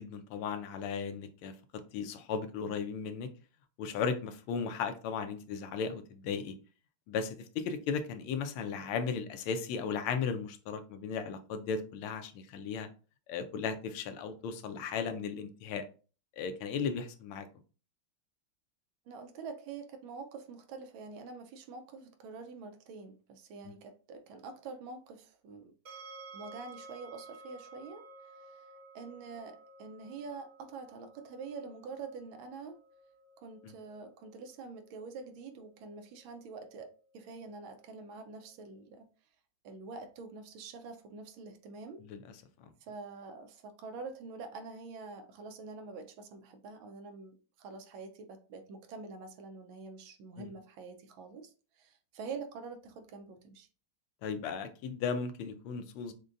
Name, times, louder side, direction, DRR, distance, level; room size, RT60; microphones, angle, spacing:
voice 1, 0.0-3.3 3.8-6.6 7.1-12.9 13.3-15.8 16.4-17.5 23.6-23.7 33.6-33.7 42.0-42.3 42.6-42.7 50.4-50.5 54.2-56.1, left 6 dB, 85° left, 1.5 m, -36 dB
voice 2, 19.1-25.7 26.3-28.7 28.9-32.8 33.4-39.1 39.6-42.0 42.8-53.7, right 4 dB, 75° right, 1.3 m, -46 dB
sound 1, 25.9-38.8, right 3 dB, 55° right, 1.3 m, -55 dB
6.3 x 2.2 x 2.5 m
omnidirectional pair, 2.3 m